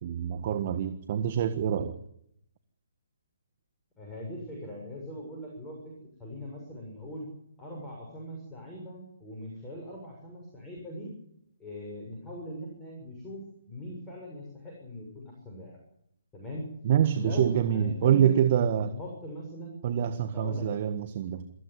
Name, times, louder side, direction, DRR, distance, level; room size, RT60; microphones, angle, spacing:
voice 1, 0.0-2.0 16.8-18.9 19.8-21.5, right 9 dB, 40° right, 10 dB, 1.5 m, -26 dB
voice 2, 4.0-7.3 7.6-11.1 11.6-13.4 13.7-15.8 16.3-16.7 17.2-18.4 18.7-19.8 20.3-20.9, left 1 dB, 10° left, -2 dB, 7.0 m, -41 dB
24.5 x 15.0 x 9.6 m, 0.75 s
figure-of-eight pair, 140°, 0 cm